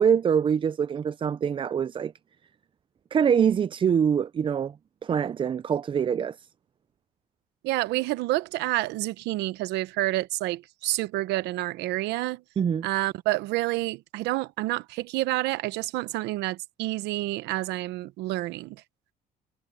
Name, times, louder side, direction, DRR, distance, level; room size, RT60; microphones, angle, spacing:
voice 1, 0.0-2.1 3.1-4.8 5.0-6.5 12.6-12.9, right 7 dB, 30° right, 0.4 m, -24 dB
voice 2, 7.6-12.4 12.8-18.8, right 18 dB, 90° right, 0.9 m, -28 dB
cardioid pair, 110°, 17 cm